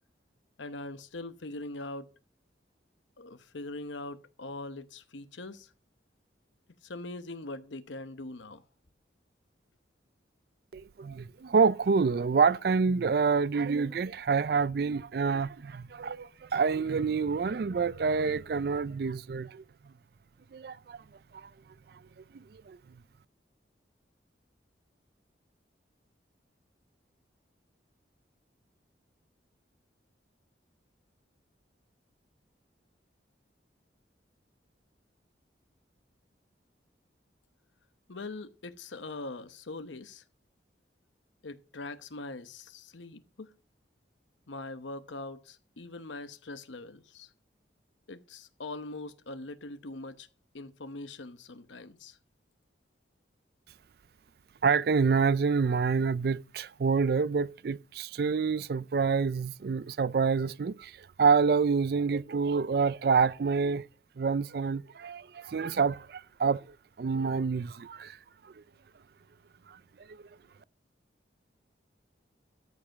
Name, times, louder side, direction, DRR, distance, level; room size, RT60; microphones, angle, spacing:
voice 1, 0.6-2.1 3.2-5.7 6.8-8.6 38.1-40.2 41.4-43.5 44.5-47.3 48.1-50.3 50.5-52.2, left 2 dB, 90° left, 0.9 m, -42 dB
voice 2, 10.7-19.6 20.5-21.0 21.3-21.5 22.3-22.8 54.6-63.9 64.2-68.2 68.4-68.6 69.7-69.8 70.1-70.2, right 5 dB, 55° right, 0.4 m, -27 dB
13.5 x 5.2 x 5.9 m
head